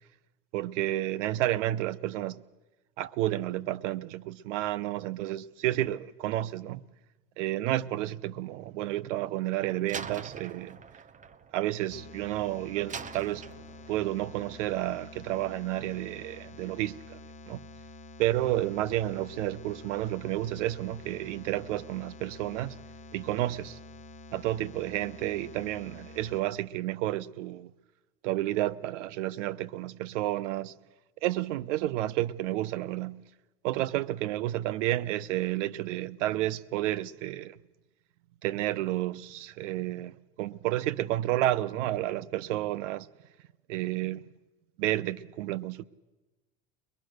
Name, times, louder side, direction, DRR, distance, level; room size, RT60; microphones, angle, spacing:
voice 1, 0.5-2.4 3.0-6.8 7.4-10.8 11.5-13.5 13.9-17.2 17.5-17.6 18.2-22.8 23.1-23.8 24.3-27.7 28.2-30.7 31.2-33.2 33.6-37.6 38.4-43.1 43.7-44.2 44.8-45.8, right 15 dB, 75° right, 0.8 m, -31 dB
Slam, 9.9-12.3 12.9-14.1, right 6 dB, 20° right, 0.7 m, -43 dB
sound 1, 11.9-26.4, left 2 dB, 20° left, 1.0 m, -48 dB
22.5 x 21.5 x 6.5 m
supercardioid pair, 100°, 36 cm